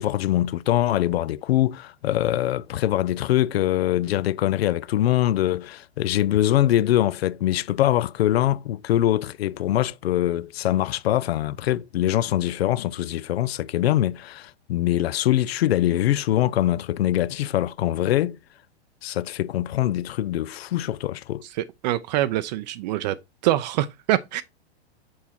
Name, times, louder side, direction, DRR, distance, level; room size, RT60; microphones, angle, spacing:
voice 1, 0.0-18.4 19.0-21.4, left 13 dB, 70° left, 0.5 m, -23 dB
voice 2, 21.4-23.2 23.4-24.4, right 14 dB, 40° right, 0.5 m, -25 dB
6.4 x 5.7 x 4.3 m
hypercardioid pair, 115°, 32 cm